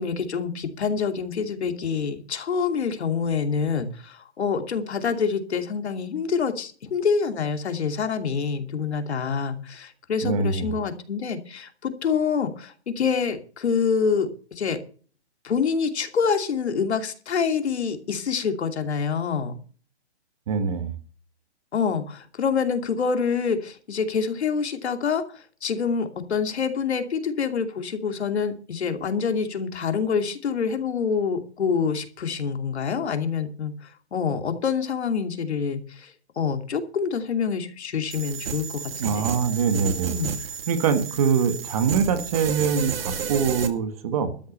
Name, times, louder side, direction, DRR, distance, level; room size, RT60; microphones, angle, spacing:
voice 1, 0.0-14.8 15.4-19.5 21.7-25.2 25.6-33.7 34.1-36.1 36.4-39.2 40.1-40.3, left 6 dB, 70° left, 6 dB, 2.8 m, -26 dB
voice 2, 10.2-10.8 20.5-20.9 39.0-40.1 40.7-44.3, right 6 dB, 35° right, 9 dB, 1.7 m, -24 dB
sound 1, 38.1-43.7, right 6 dB, 55° right, 2.2 m, -32 dB
13.0 x 10.5 x 5.6 m, 0.40 s
hypercardioid pair, 170°, 34 cm